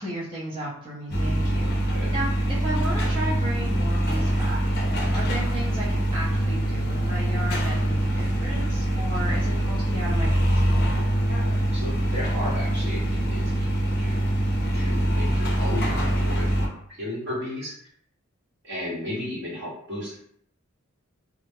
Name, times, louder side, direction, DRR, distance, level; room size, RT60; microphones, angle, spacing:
voice 1, 0.0-1.7 2.1-11.0, right 1 dB, 25° right, -9 dB, 0.7 m, -34 dB
sound 1, 1.1-16.7, right 1 dB, 50° left, 0.6 m, -24 dB
voice 2, 11.3-14.4 14.7-16.7 17.0-17.7 18.6-20.2, left 1 dB, 55° right, -6 dB, 1.2 m, -34 dB
2.4 x 2.0 x 3.5 m, 0.67 s
head